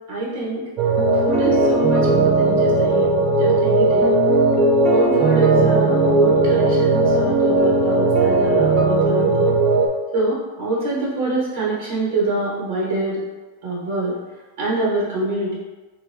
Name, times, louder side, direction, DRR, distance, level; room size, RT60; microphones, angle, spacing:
voice 1, 0.1-0.6 1.2-3.1 3.4-4.1 4.9-9.5 10.1-13.2 13.6-14.1 14.6-15.5, right 2 dB, 55° right, -6 dB, 1.0 m, -24 dB
sound 1, 0.8-9.9, right 2 dB, 25° right, 0.3 m, -17 dB
3.3 x 2.2 x 3.3 m, 1.2 s
supercardioid pair, 170°, 0 cm